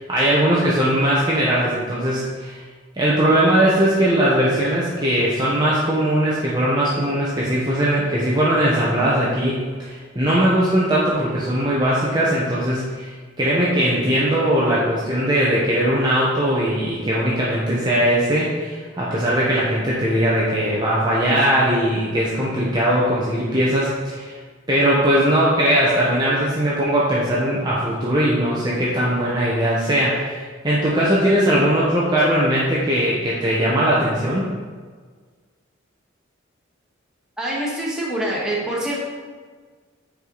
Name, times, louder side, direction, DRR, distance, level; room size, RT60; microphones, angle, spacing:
voice 1, 0.0-2.6 3.0-24.4 24.7-34.5, right 1 dB, 20° right, -7 dB, 1.1 m, -20 dB
voice 2, 37.4-39.0, right 1 dB, 5° right, -6 dB, 1.6 m, -25 dB
8.8 x 4.9 x 4.0 m, 1.5 s
head